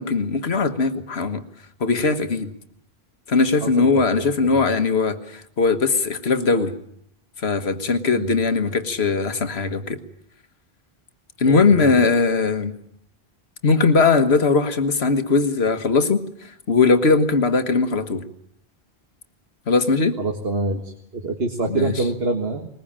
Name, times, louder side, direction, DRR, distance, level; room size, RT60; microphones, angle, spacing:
voice 1, 0.0-1.4 1.8-2.5 3.3-6.7 7.4-10.0 11.4-12.7 13.6-18.2 19.7-20.2 21.7-22.0, left 4 dB, 80° left, 10 dB, 1.7 m, -20 dB
voice 2, 3.6-4.0 4.4-4.6 8.1-8.3 11.4-11.9 20.2-22.7, right 2 dB, 75° right, 3 dB, 2.0 m, -26 dB
21.0 x 20.5 x 8.8 m, 0.71 s
omnidirectional pair, 1.0 m